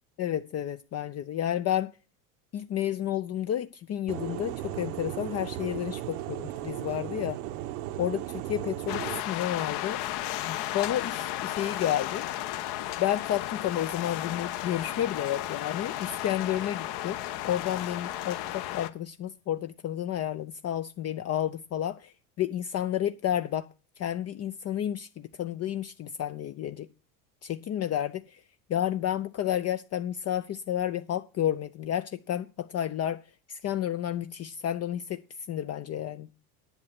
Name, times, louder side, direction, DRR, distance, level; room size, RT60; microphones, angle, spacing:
voice 1, 0.2-1.9 2.5-7.4 8.0-10.0 10.5-12.2 13.0-17.2 17.4-23.7 24.0-26.9 27.4-28.4 28.7-33.2 33.5-35.2 35.5-36.3, left 11 dB, 35° left, 0.6 m, -31 dB
sound 1, 4.1-9.2, right 14 dB, 70° right, 1.0 m, -36 dB
sound 2, 8.9-18.9, left 13 dB, 55° left, 1.3 m, -34 dB
10.5 x 7.8 x 5.9 m
hypercardioid pair, 90°, 45 cm